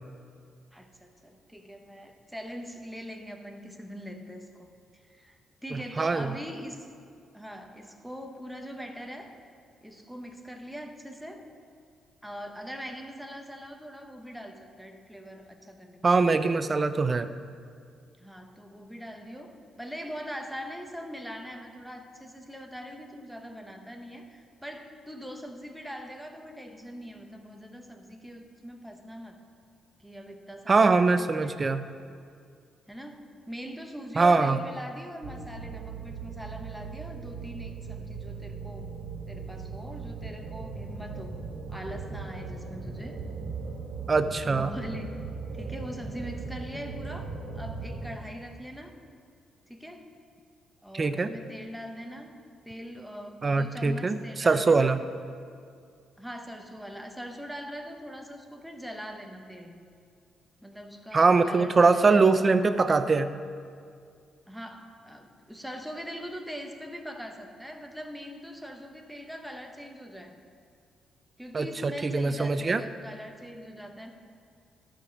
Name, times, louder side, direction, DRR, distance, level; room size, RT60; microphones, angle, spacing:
voice 1, 0.7-5.4 5.6-6.9 7.3-9.3 9.8-11.5 12.2-16.6 18.2-29.4 30.0-31.8 32.9-38.9 39.3-41.4 41.7-43.2 44.5-45.1 45.5-49.0 49.7-50.1 50.8-52.3 52.6-55.0 56.2-59.8 60.6-62.3 64.5-70.4 71.4-74.1, equal, ahead, 3 dB, 0.9 m, -42 dB
voice 2, 5.7-6.3 16.0-17.3 30.7-31.8 34.2-34.6 44.1-44.7 50.9-51.3 53.4-55.0 61.1-63.3 71.5-72.8, right 4 dB, 30° right, 11 dB, 0.5 m, -23 dB
sound 1, 35.2-48.2, right 4 dB, 75° right, 1.4 m, -38 dB
12.5 x 5.1 x 5.2 m, 2.2 s
cardioid pair, 90°, 0 cm